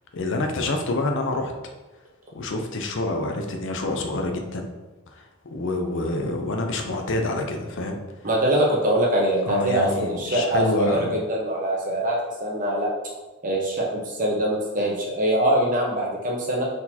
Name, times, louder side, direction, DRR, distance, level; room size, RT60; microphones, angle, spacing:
voice 1, 0.1-1.5 2.3-4.7 5.1-8.0 9.4-11.2, left 2 dB, 60° left, 4 dB, 0.6 m, -27 dB
voice 2, 8.2-12.9 13.4-16.6, right 1 dB, 40° right, -2 dB, 1.0 m, -23 dB
4.3 x 4.0 x 2.8 m, 1.1 s
head